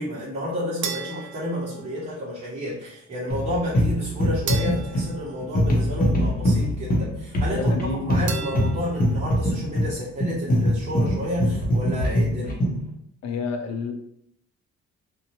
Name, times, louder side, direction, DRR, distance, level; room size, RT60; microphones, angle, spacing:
voice 1, 0.0-12.6, equal, 20° right, -8 dB, 1.0 m, -31 dB
sound 1, 0.8-2.3 4.5-6.3 8.3-9.4, right 6 dB, 40° right, 0.4 m, -36 dB
sound 2, 3.3-12.9, equal, 30° left, 0.7 m, -23 dB
voice 2, 7.5-8.2 13.2-13.9, left 4 dB, 60° left, 5 dB, 0.6 m, -29 dB
2.6 x 2.2 x 2.8 m, 0.71 s
cardioid pair, 90°, 30 cm